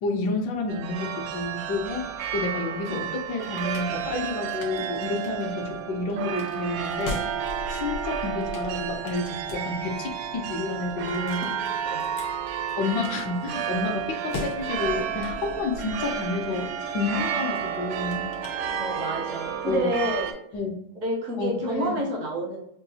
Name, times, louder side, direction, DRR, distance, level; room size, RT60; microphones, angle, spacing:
voice 1, 0.0-7.3 7.7-11.6 12.8-18.3 19.6-19.9 20.5-20.7 21.4-22.0, left 3 dB, 65° left, 2 dB, 1.3 m, -30 dB
sound 1, 0.7-20.3, right 8 dB, 85° right, 1.4 m, -31 dB
sound 2, 3.0-19.2, left 3 dB, 80° left, 1.7 m, -42 dB
voice 2, 18.8-20.3 21.0-22.6, equal, 65° right, 1 dB, 0.8 m, -28 dB
5.4 x 2.2 x 2.7 m, 0.73 s
omnidirectional pair, 2.3 m